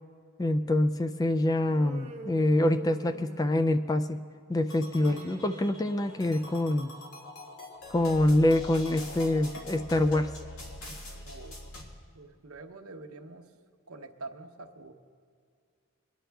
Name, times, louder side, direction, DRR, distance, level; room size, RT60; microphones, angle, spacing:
voice 1, 0.4-4.2 4.5-6.9 7.9-10.3, left 1 dB, 15° left, 9 dB, 0.3 m, -25 dB
Human voice, 1.6-3.9 4.8-6.6, right 3 dB, 30° right, 0.8 m, -46 dB
sound 1, 4.7-11.8, left 1 dB, 75° left, 1.9 m, -44 dB
voice 2, 11.2-11.6 12.1-13.5 13.9-14.9, right 3 dB, 75° right, 5 dB, 0.9 m, -45 dB
22.5 x 10.5 x 3.4 m, 2.2 s
head